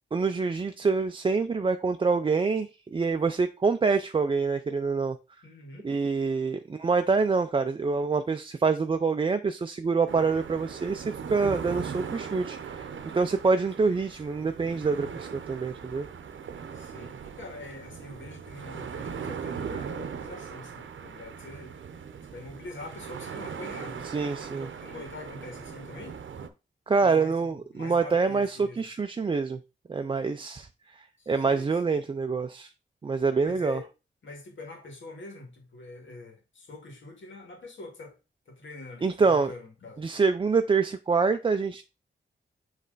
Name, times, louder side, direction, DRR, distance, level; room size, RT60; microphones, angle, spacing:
voice 1, 0.1-5.2 5.8-12.9 13.1-16.1 24.1-24.7 26.9-29.6 29.9-30.7 31.0-32.7 33.0-33.8 39.0-39.5 40.0-41.8, right 4 dB, 25° right, 0.4 m, -26 dB
voice 2, 5.4-5.9 13.8-14.4 16.7-21.8 22.3-24.1 24.5-26.2 27.0-28.9 31.2-31.8 33.4-33.9 34.2-38.2 38.5-40.1, left 3 dB, 85° left, 1.8 m, -44 dB
sound 1, 10.1-26.5, right 6 dB, 85° right, 0.7 m, -39 dB
7.7 x 3.2 x 3.8 m
wide cardioid pair, 120°, 19 cm